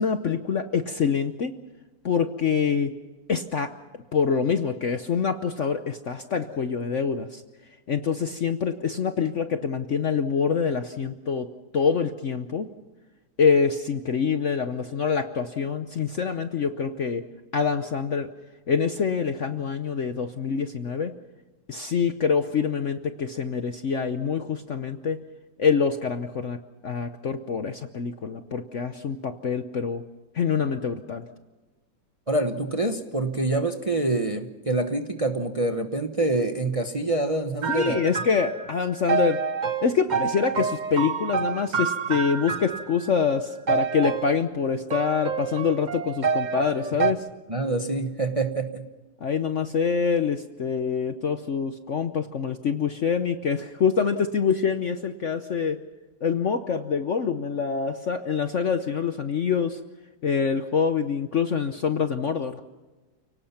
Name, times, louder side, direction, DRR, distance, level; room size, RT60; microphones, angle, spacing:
voice 1, 0.0-1.6 2.0-2.9 3.3-3.7 4.1-7.4 7.9-11.5 11.7-12.7 13.4-17.2 17.5-18.3 18.7-21.1 21.7-25.2 25.6-26.6 26.8-30.0 30.3-31.3 37.7-39.4 39.8-47.2 49.2-55.8 56.2-59.8 60.2-62.6, left 6 dB, 50° left, 9 dB, 0.9 m, -25 dB
voice 2, 32.3-38.0 47.5-48.8, right 2 dB, 25° right, 6 dB, 0.9 m, -26 dB
sound 1, 37.6-43.1 43.7-44.4 44.9-47.1, right 5 dB, 55° right, 0.5 m, -28 dB
29.5 x 18.0 x 5.8 m, 1.2 s
omnidirectional pair, 2.0 m